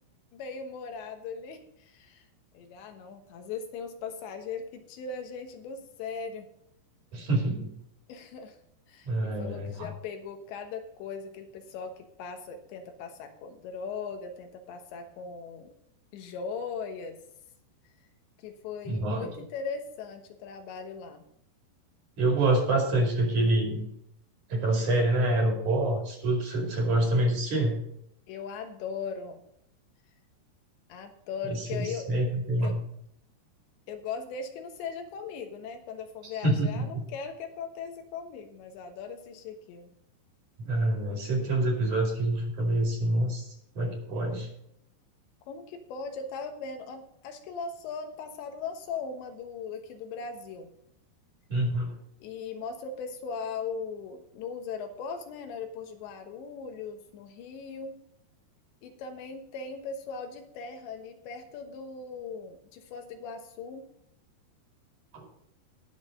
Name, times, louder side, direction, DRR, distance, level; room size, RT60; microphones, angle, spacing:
voice 1, 0.3-2.2 2.5-6.5 8.1-8.6 8.9-15.7 16.1-17.2 18.4-21.3 28.3-29.4 30.9-32.1 32.6-32.8 33.9-39.9 45.5-50.7 52.2-58.0 58.8-63.9, left 5 dB, 90° left, 5 dB, 3.6 m, -39 dB
voice 2, 7.1-7.7 9.0-9.9 18.8-19.3 22.2-23.9 24.5-27.8 31.5-32.8 36.4-37.0 40.6-43.5 43.7-44.5 51.5-51.9 65.1-65.3, right 1 dB, 50° right, 0 dB, 3.4 m, -26 dB
19.0 x 6.5 x 3.8 m, 0.74 s
omnidirectional pair, 5.0 m